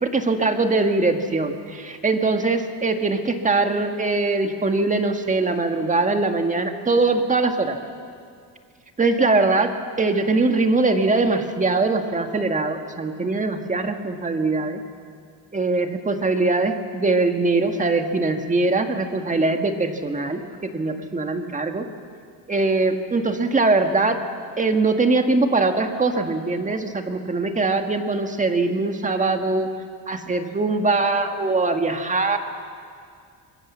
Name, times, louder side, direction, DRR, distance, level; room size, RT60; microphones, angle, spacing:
voice 1, 0.0-7.8 9.0-14.8 15.5-21.8 22.5-24.2 24.6-29.7 30.1-32.4, right 3 dB, 20° right, 6 dB, 1.6 m, -22 dB
25.0 x 22.0 x 7.4 m, 2.2 s
cardioid pair, 145°, 40 cm